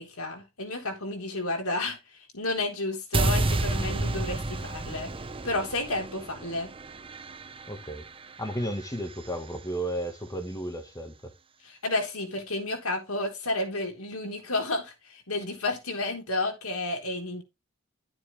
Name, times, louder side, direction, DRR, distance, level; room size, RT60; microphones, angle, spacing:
voice 1, 0.0-2.0 2.3-5.1 5.4-6.7 11.6-17.4, left 2 dB, 80° left, 4.0 m, -31 dB
sound 1, 3.1-9.3, right 2 dB, 25° right, 0.9 m, -31 dB
voice 2, 7.7-8.0 8.4-11.1, right 1 dB, 15° left, 2.0 m, -33 dB
13.0 x 7.6 x 3.6 m
head